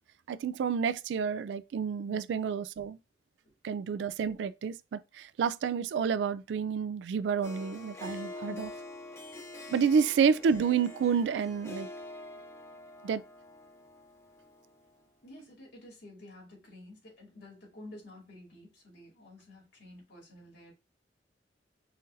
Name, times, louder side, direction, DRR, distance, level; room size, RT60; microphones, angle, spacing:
voice 1, 0.3-3.0 3.6-8.7 9.7-11.9 13.0-13.2, right 6 dB, 85° right, 0.3 m, -29 dB
Harp, 7.4-14.9, left 2 dB, 15° left, 0.7 m, -45 dB
voice 2, 15.2-20.7, left 1 dB, 80° left, 2.7 m, -51 dB
5.7 x 2.6 x 2.6 m
head